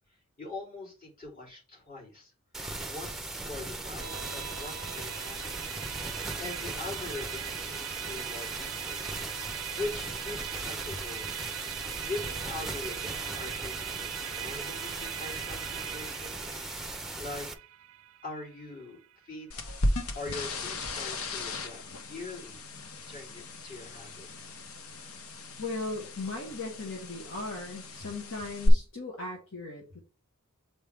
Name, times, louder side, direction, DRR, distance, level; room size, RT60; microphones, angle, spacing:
voice 1, 0.4-2.3 2.9-5.6 6.4-9.2 9.8-11.3 12.0-16.4 17.2-17.5 18.2-19.0 19.2-19.8 20.1-21.8 22.1-22.6 23.0-24.5, left 3 dB, 40° left, -4 dB, 3.3 m, -42 dB
sound 1, 2.5-17.5, right 2 dB, ahead, 0.6 m, -38 dB
Musical instrument, 4.0-19.5, right 12 dB, 70° right, 0.4 m, -41 dB
sound 2, 19.5-28.7, left 1 dB, 85° left, 0.9 m, -36 dB
voice 2, 25.6-30.0, left 3 dB, 65° left, -1 dB, 1.6 m, -37 dB
7.3 x 4.5 x 3.6 m, 0.34 s
head